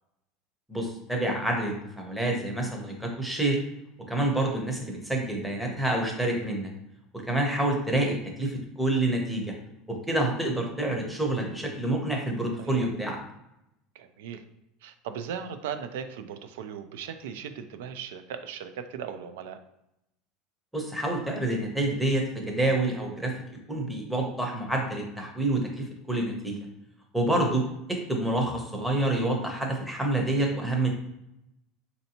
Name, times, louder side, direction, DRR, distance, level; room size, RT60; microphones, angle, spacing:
voice 1, 0.7-3.6 4.1-6.7 7.3-9.5 10.1-13.2 20.7-23.3 23.7-26.6 27.1-27.6 27.9-30.9, right 1 dB, 5° right, 0 dB, 0.6 m, -27 dB
voice 2, 12.6-12.9 13.9-14.4 14.8-19.6, right 7 dB, 90° right, 9 dB, 0.4 m, -38 dB
4.3 x 2.6 x 2.8 m, 0.85 s
cardioid pair, 160°, 0 cm